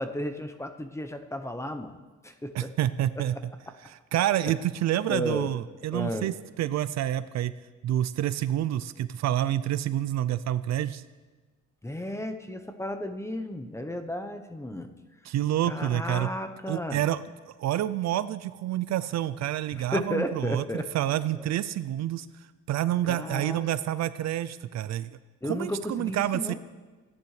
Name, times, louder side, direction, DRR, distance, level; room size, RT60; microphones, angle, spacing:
voice 1, 0.0-2.0 2.2-2.7 3.3-3.4 5.1-5.5 5.9-6.4 11.8-14.9 15.6-17.0 19.7-20.9 21.3-21.4 23.1-23.6 25.4-26.5, left 1 dB, 10° left, 7 dB, 0.8 m, -33 dB
voice 2, 2.5-3.4 3.8-7.5 7.8-11.0 15.2-16.3 16.7-17.2 17.6-20.6 20.9-22.3 22.7-25.1 25.4-26.5, right 12 dB, 60° right, 15 dB, 0.4 m, -28 dB
15.0 x 10.5 x 3.2 m, 1.3 s
cardioid pair, 90°, 30 cm